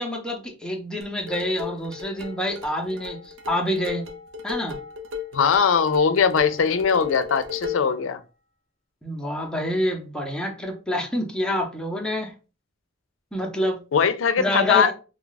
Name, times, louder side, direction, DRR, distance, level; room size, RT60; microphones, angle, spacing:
voice 1, 0.0-4.1 4.4-4.8 9.0-12.3 13.3-13.8 14.4-14.9, left 1 dB, 5° left, 0.6 m, -27 dB
sound 1, 1.0-8.0, left 6 dB, 80° right, 0.7 m, -35 dB
voice 2, 5.3-8.2 13.9-14.9, left 6 dB, 80° left, 0.4 m, -20 dB
3.1 x 2.3 x 3.9 m
head